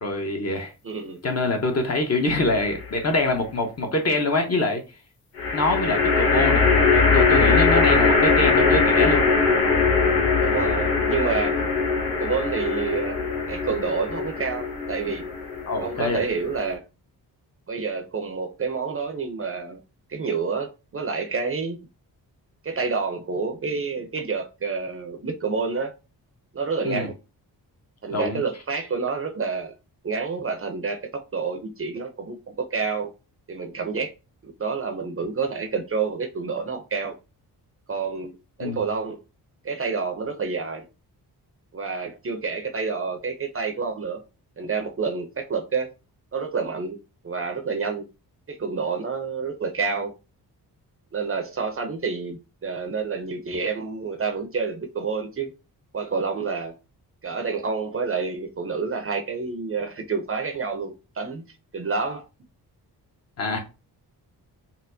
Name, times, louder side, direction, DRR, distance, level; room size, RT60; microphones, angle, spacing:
voice 1, 0.0-0.7 1.2-4.8 5.5-9.2 15.7-16.2 26.8-27.1 28.1-28.4 38.6-38.8 63.4-63.6, left 2 dB, 40° left, 0.9 m, -25 dB
voice 2, 0.8-1.2 10.4-11.6 12.2-13.2 13.5-15.3 15.8-16.8 17.7-19.8 20.1-21.8 22.6-25.9 26.5-27.1 28.0-29.7 30.0-33.1 33.5-34.1 34.4-37.1 37.9-39.2 39.6-40.8 41.7-44.2 44.6-45.9 46.3-48.1 48.5-50.1 51.1-55.5 55.9-56.7 57.2-61.4 61.7-62.2, right 5 dB, 35° right, 0.6 m, -28 dB
sound 1, 2.3-2.9 5.4-16.7, left 4 dB, 90° left, 1.2 m, -21 dB
4.2 x 2.1 x 2.6 m
cardioid pair, 100°, 39 cm